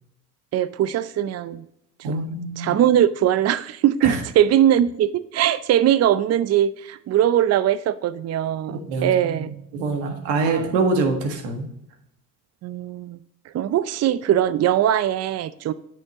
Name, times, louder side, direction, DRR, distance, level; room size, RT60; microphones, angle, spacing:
voice 1, 0.5-1.6 2.1-9.5 10.4-10.6 12.6-13.2 13.5-15.7, right 11 dB, 40° right, 16 dB, 0.5 m, -21 dB
voice 2, 2.0-2.8 4.0-4.2 8.7-11.7, right 3 dB, 75° right, 4 dB, 1.7 m, -25 dB
9.1 x 5.6 x 2.9 m, 0.77 s
hypercardioid pair, 70°, 41 cm